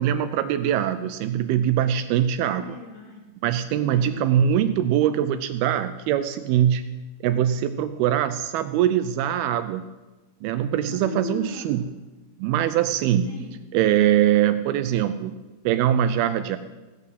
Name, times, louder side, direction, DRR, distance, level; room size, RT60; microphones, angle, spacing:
voice 1, 0.0-2.6 3.4-7.0 7.2-9.9 10.4-11.8 12.4-13.3 13.7-15.4 15.7-16.6, right 10 dB, 85° right, 11 dB, 2.3 m, -22 dB
voice 2, 2.5-3.4 3.7-4.3 10.8-12.0 13.2-13.7, left 5 dB, 70° left, 1 dB, 1.7 m, -39 dB
16.5 x 5.7 x 7.9 m, 1.2 s
omnidirectional pair, 4.7 m